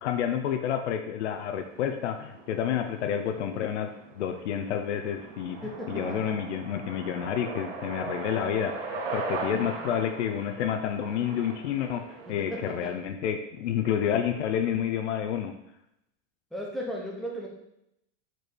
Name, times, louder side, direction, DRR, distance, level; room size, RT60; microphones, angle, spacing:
voice 1, 0.0-5.6 5.9-12.0 12.3-15.5, left 9 dB, 70° left, 6 dB, 0.8 m, -29 dB
sound 1, 1.3-12.3, right 3 dB, 60° right, 1.9 m, -39 dB
voice 2, 5.6-6.2 9.4-9.8 12.3-12.9 16.5-17.5, equal, ahead, -3 dB, 0.8 m, -36 dB
5.3 x 4.6 x 6.2 m, 0.79 s
supercardioid pair, 175°, 37 cm